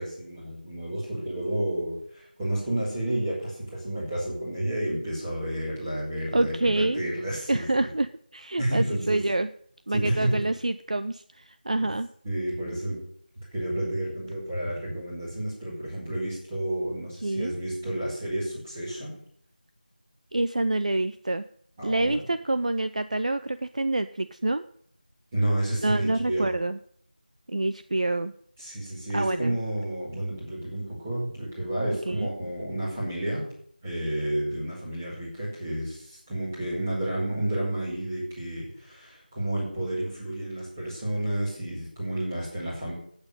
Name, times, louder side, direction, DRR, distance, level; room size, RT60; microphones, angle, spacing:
voice 1, 0.0-7.9 8.6-9.2 9.9-10.5 11.7-11.8 12.2-13.0 13.5-19.2 21.8-22.2 25.3-26.5 28.6-33.5 33.8-42.9, right 1 dB, 15° right, -6 dB, 5.0 m, -30 dB
voice 2, 6.3-7.0 7.5-9.5 9.9-12.1 17.2-17.5 20.3-21.4 21.8-24.6 25.8-26.8 27.5-28.3 29.1-29.6 32.1-32.3, right 2 dB, 50° right, 11 dB, 0.6 m, -27 dB
9.4 x 8.9 x 9.1 m, 0.63 s
figure-of-eight pair, 175°, 5 cm